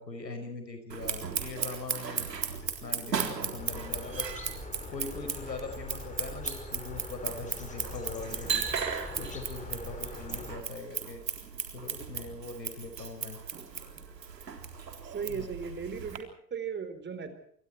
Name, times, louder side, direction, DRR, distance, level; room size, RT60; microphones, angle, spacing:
voice 1, 0.0-2.3 2.8-4.3 4.9-8.6 9.2-11.2 11.7-13.4 15.3-15.5, left 3 dB, 85° left, 7 dB, 5.6 m, -41 dB
Scissors, 0.9-16.2, right 6 dB, 80° right, 3.9 m, -36 dB
sound 1, 3.6-10.6, left 2 dB, 15° left, 5.5 m, -43 dB
voice 2, 15.0-17.3, right 6 dB, 20° right, 10 dB, 4.2 m, -37 dB
28.0 x 24.0 x 4.6 m, 0.63 s
figure-of-eight pair, 90°, 50 cm